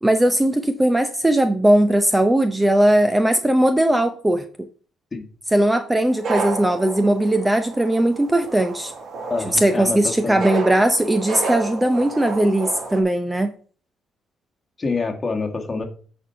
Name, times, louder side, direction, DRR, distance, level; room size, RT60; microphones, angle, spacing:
voice 1, 0.0-4.4 5.5-8.9 9.4-13.5, right 1 dB, 10° right, 8 dB, 0.7 m, -19 dB
sound 1, 6.1-13.0, right 3 dB, 60° right, 1.8 m, -31 dB
voice 2, 9.3-10.4 14.8-15.8, left 4 dB, 25° left, 2 dB, 1.8 m, -26 dB
8.9 x 4.5 x 5.7 m, 0.43 s
cardioid pair, 90°, 0 cm